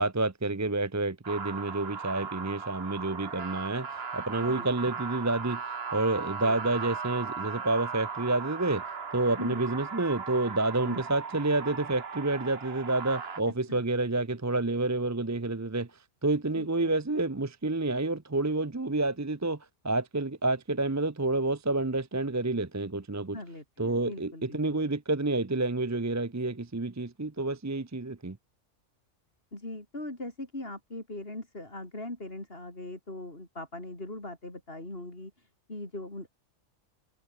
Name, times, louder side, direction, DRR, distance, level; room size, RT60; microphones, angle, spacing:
voice 1, 0.0-5.6 5.9-8.8 9.1-15.9 16.2-19.6 19.8-23.4 23.8-28.4, right 2 dB, 20° right, 0.6 m, -29 dB
sound 1, 1.2-13.4, right 5 dB, 55° right, 1.6 m, -37 dB
voice 2, 16.5-17.0 23.3-24.8 29.5-36.3, left 1 dB, 50° left, 5.7 m, -40 dB
omnidirectional pair, 1.3 m